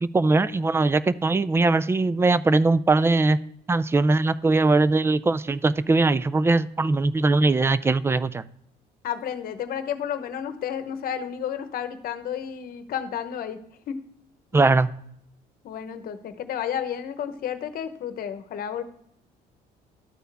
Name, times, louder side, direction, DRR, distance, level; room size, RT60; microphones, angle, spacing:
voice 1, 0.0-3.4 3.7-8.4 14.5-14.9, right 3 dB, 15° right, 16 dB, 0.3 m, -21 dB
voice 2, 9.0-13.6 13.9-14.0 15.6-18.8, left 9 dB, 60° left, 10 dB, 0.9 m, -31 dB
13.0 x 4.5 x 3.4 m, 0.71 s
cardioid pair, 110°, 17 cm